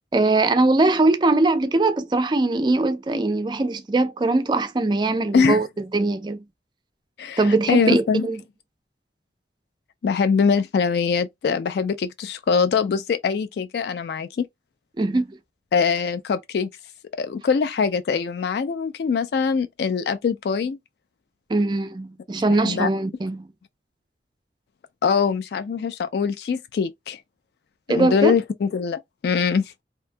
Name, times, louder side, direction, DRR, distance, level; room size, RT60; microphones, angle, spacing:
voice 1, 0.1-5.7 5.9-6.4 7.4-8.4 15.0-15.4 21.5-23.5 27.9-28.4, right 2 dB, 25° right, 0.3 m, -21 dB
voice 2, 7.2-8.3 10.0-14.5 15.7-16.7 17.1-20.8 22.6-22.9 25.0-27.2 27.9-29.6, left 6 dB, 65° left, 0.3 m, -23 dB
2.6 x 2.2 x 2.5 m
head